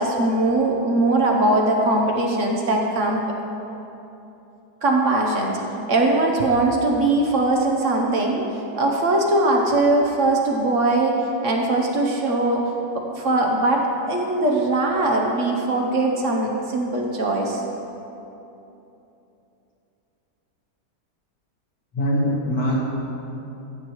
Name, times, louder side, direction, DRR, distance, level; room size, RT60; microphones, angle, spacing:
voice 1, 0.0-3.2 4.8-5.6 5.9-8.4 8.8-11.2 11.4-12.7 12.9-17.6, right 2 dB, 55° right, 0 dB, 1.0 m, -21 dB
voice 2, 21.9-22.8, equal, 80° left, -5 dB, 2.4 m, -22 dB
14.0 x 7.9 x 3.0 m, 2.9 s
omnidirectional pair, 1.8 m